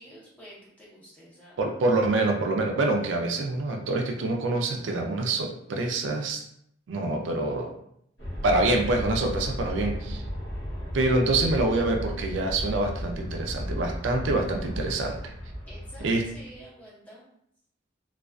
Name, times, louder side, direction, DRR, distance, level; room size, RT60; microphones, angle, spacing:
voice 1, 0.0-1.6 15.7-17.2, equal, 10° left, -7 dB, 0.8 m, -48 dB
voice 2, 1.6-6.4 6.9-7.7 8.4-10.2 10.9-15.3 16.0-16.3, right 2 dB, 80° right, 2 dB, 0.4 m, -26 dB
Aircraft, 8.2-16.6, equal, 65° left, 0.8 m, -34 dB
2.4 x 2.3 x 2.2 m, 0.72 s
head